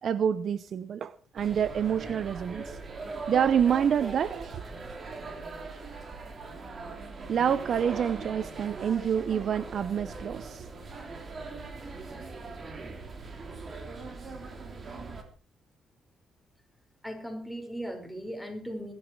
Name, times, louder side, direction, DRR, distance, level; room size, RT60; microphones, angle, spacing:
voice 1, 0.0-2.8 3.1-4.6 7.3-10.7, right 8 dB, 60° right, 0.8 m, -27 dB
sound 1, 1.4-15.2, right 3 dB, 40° right, 3.4 m, -41 dB
voice 2, 17.0-18.9, equal, ahead, 5.5 m, -37 dB
19.5 x 12.5 x 4.7 m
cardioid pair, 90°, 0 cm